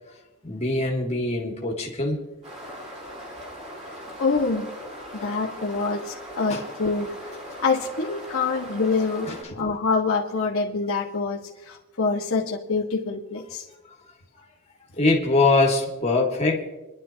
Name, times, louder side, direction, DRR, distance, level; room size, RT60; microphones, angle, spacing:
voice 1, 0.4-2.2 6.5-6.6 9.3-9.4 15.0-16.7, left 2 dB, 30° left, 0 dB, 2.0 m, -22 dB
sound 1, 2.4-9.4, equal, 30° right, 5.5 m, -40 dB
voice 2, 4.2-4.7 5.1-7.3 7.6-13.7, left 4 dB, 70° left, -4 dB, 1.5 m, -26 dB
28.5 x 11.5 x 2.9 m, 1.1 s
head